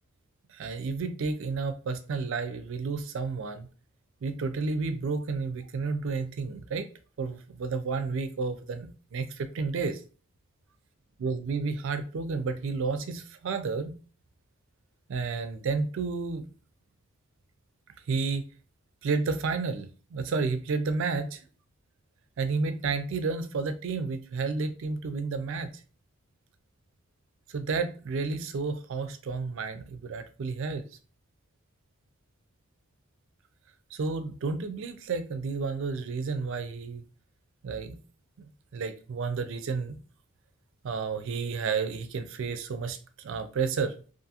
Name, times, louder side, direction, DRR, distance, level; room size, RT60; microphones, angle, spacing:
voice 1, 0.5-3.7 4.2-6.9 7.2-10.0 11.2-13.9 15.1-16.4 18.1-18.4 19.0-21.4 22.4-25.7 27.5-30.8 33.9-37.0 37.6-38.0 38.7-40.0 40.8-43.9, right 4 dB, 60° right, 0.4 m, -31 dB
2.5 x 2.4 x 2.7 m
head